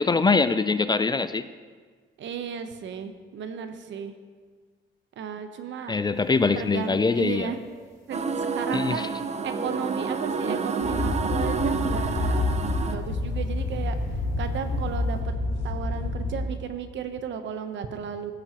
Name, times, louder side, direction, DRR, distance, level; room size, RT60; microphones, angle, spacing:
voice 1, 0.0-1.4 5.9-7.5 8.7-9.1, left 4 dB, 20° left, 12 dB, 0.4 m, -23 dB
voice 2, 2.2-4.1 5.2-5.9 6.5-7.6 8.1-9.1 9.4-12.4 12.8-14.0 14.4-15.2 15.6-18.3, right 7 dB, 70° right, 8 dB, 0.9 m, -34 dB
sound 1, 6.2-6.3 6.6-7.9 8.2-9.1 9.4-11.5 11.9-12.1 12.7-13.0 14.1-14.2 14.5-14.6, right 2 dB, 15° right, 2.1 m, -40 dB
sound 2, 8.1-13.0, right 5 dB, 35° right, 0.7 m, -29 dB
sound 3, 10.8-16.4, left 2 dB, 65° left, 2.3 m, -28 dB
15.5 x 8.8 x 3.0 m, 1.5 s
cardioid pair, 90°, 20 cm